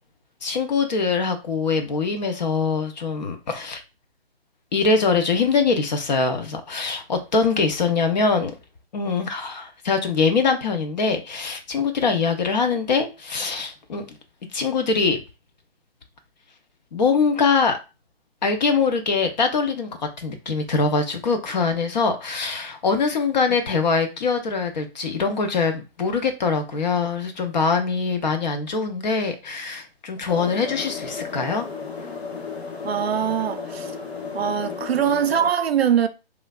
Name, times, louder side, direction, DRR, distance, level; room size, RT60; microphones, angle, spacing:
voice 1, 0.4-3.8 4.7-8.5 8.9-14.2 14.5-15.2 16.9-17.8 18.4-31.7, left 4 dB, 45° left, 0.6 m, -23 dB
sound 1, 30.3-35.5, left 5 dB, 85° left, 0.8 m, -34 dB
voice 2, 32.8-33.9 34.3-36.1, right 8 dB, 75° right, 0.5 m, -22 dB
3.1 x 2.4 x 2.3 m
figure-of-eight pair, 145°, 31 cm